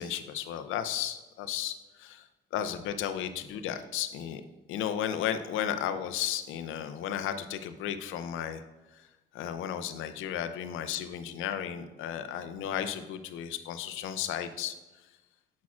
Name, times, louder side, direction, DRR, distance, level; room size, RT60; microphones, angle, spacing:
voice 1, 0.0-4.4 4.7-8.6 8.9-9.1 9.3-14.8, left 9 dB, 90° left, 9 dB, 0.5 m, -34 dB
7.2 x 6.0 x 2.4 m, 1.1 s
cardioid pair, 90°, 20 cm